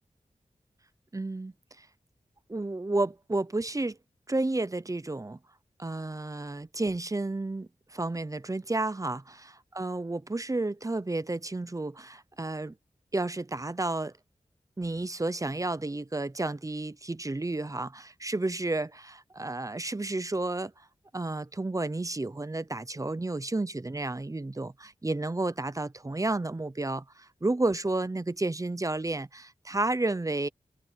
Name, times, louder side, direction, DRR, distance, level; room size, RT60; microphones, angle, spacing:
voice 1, 1.1-1.9 2.5-4.0 4.3-5.4 5.8-12.7 13.1-14.1 14.8-20.7 21.1-30.5, right 2 dB, 25° right, 0.7 m, -31 dB
wide cardioid pair, 70°, 14 cm